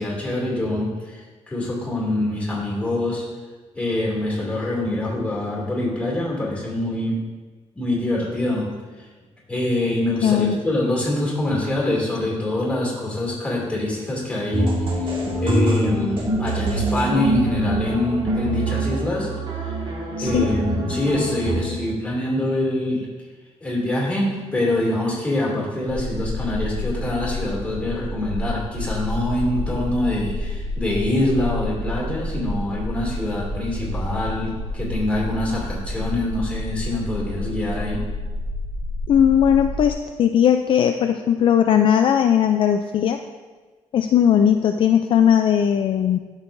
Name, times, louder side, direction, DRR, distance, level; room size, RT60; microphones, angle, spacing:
voice 1, 0.0-3.2 3.7-7.2 7.7-8.7 9.5-15.1 15.4-19.3 19.6-19.7 20.2-23.1 23.6-38.0, left 1 dB, 10° left, -4 dB, 2.5 m, -25 dB
voice 2, 10.2-10.6 20.2-20.5 39.1-43.2 43.9-46.2, left 9 dB, 50° left, 6 dB, 0.4 m, -18 dB
sound 1, 14.5-21.6, right 1 dB, 50° right, 1.8 m, -24 dB
sound 2, 25.9-39.9, left 1 dB, 65° right, 2.4 m, -29 dB
13.0 x 6.4 x 2.6 m, 1.4 s
cardioid pair, 150°, 11 cm